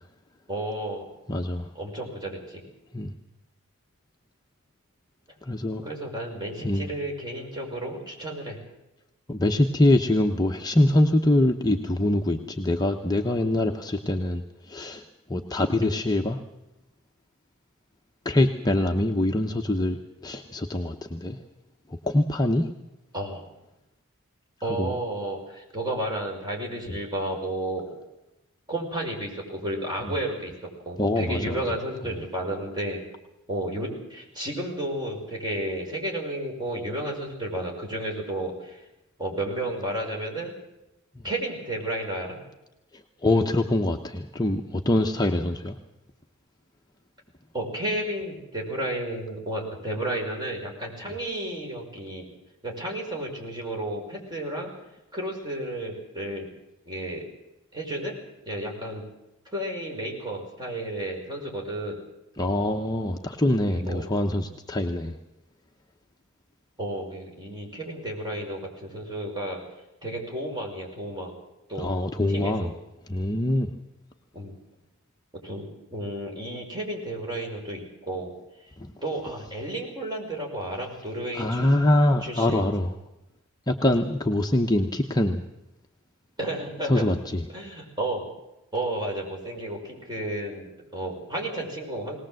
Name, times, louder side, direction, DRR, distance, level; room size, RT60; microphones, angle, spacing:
voice 1, 0.5-1.0 1.7-2.6 5.8-8.6 23.1-23.4 24.6-28.0 28.7-33.0 33.5-38.8 39.2-40.5 41.2-42.4 47.5-52.3 52.6-54.7 55.1-56.5 56.9-57.3 57.7-58.2 58.5-59.0 59.5-62.0 63.7-64.1 66.8-69.6 70.0-71.3 71.7-71.9 72.3-72.7 74.3-74.6 75.4-78.3 79.0-81.7 82.2-82.7 86.4-87.1 87.5-88.3 88.7-92.2, right 1 dB, 20° right, -1 dB, 5.7 m, -32 dB
voice 2, 1.3-1.7 2.9-3.1 5.4-5.8 6.6-6.9 9.3-15.0 15.3-16.4 18.2-21.4 22.0-22.7 24.8-24.9 31.0-31.5 43.2-45.8 62.4-65.1 71.8-72.7 73.1-73.7 78.8-78.9 81.3-82.9 83.7-85.4 86.9-87.4, left 1 dB, 20° left, 2 dB, 0.9 m, -24 dB
20.5 x 19.0 x 7.8 m, 0.94 s
head